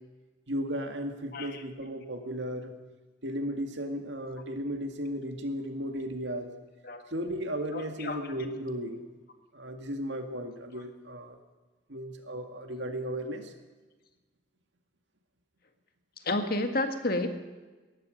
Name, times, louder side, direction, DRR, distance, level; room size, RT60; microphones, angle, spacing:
voice 1, 0.5-2.7 3.2-6.5 7.1-9.0 9.5-11.4 11.9-13.5, equal, 75° right, 5 dB, 2.1 m, -35 dB
voice 2, 7.7-8.3 16.2-17.3, left 2 dB, 55° left, 6 dB, 1.7 m, -30 dB
18.5 x 14.5 x 5.3 m, 1.3 s
head